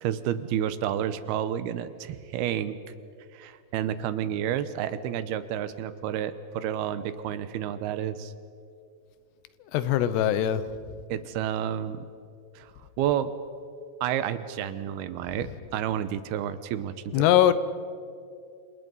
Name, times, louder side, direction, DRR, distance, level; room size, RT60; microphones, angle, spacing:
voice 1, 0.0-2.8 3.3-8.3 11.1-12.1 12.6-12.7 13.0-13.3 14.0-17.2, right 10 dB, 80° right, 12 dB, 2.7 m, -30 dB
voice 2, 9.7-10.6 17.1-17.5, left 11 dB, 85° left, 13 dB, 3.1 m, -21 dB
30.0 x 27.0 x 5.5 m, 2.4 s
omnidirectional pair, 4.7 m